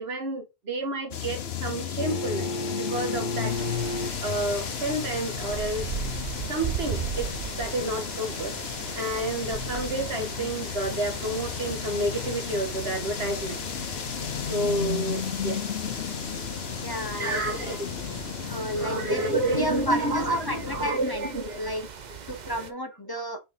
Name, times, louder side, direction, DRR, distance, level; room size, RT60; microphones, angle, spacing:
voice 1, 0.0-2.5 2.8-3.5 4.2-5.9 6.5-7.3 7.6-8.5 9.0-13.6 14.5-15.6 17.2-17.9 18.8-21.6, right 2 dB, 80° right, 1.8 m, -30 dB
sound 1, 1.1-20.9, left 8 dB, 80° left, 1.1 m, -34 dB
sound 2, 2.0-4.4 6.9-7.0, equal, 50° left, 1.0 m, -33 dB
sound 3, 3.5-22.7, right 7 dB, 45° right, 0.9 m, -39 dB
voice 2, 16.8-17.4 18.5-21.3 21.6-21.8 22.3-23.4, right 1 dB, 25° left, 1.0 m, -31 dB
5.6 x 4.3 x 4.2 m
omnidirectional pair, 1.0 m